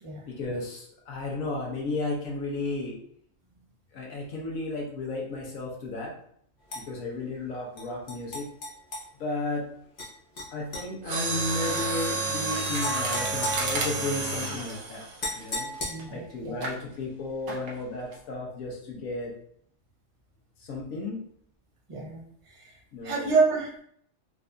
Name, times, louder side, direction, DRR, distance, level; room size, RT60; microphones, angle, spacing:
voice 1, 0.3-3.0 3.9-6.1 6.7-8.5 9.2-9.7 10.5-15.0 15.3-15.7 16.1-19.3 20.6-21.2 22.9-23.3, left 2 dB, 75° left, -2 dB, 1.3 m, -33 dB
sound 1, 6.7-6.8 7.8-9.0 10.0-10.1 10.4-10.8 11.6-11.9 12.8-14.3 15.2-16.3, left 1 dB, 40° left, 0.8 m, -36 dB
Mechanisms, 11.0-16.0 16.6-16.8 17.5-17.8 18.1-18.2, right 3 dB, 80° right, 1.2 m, -30 dB
voice 2, 15.9-16.5 21.9-22.2 22.5-22.6 23.0-23.8, right 4 dB, 30° right, -3 dB, 0.6 m, -27 dB
3.9 x 2.6 x 2.2 m, 0.65 s
omnidirectional pair, 1.4 m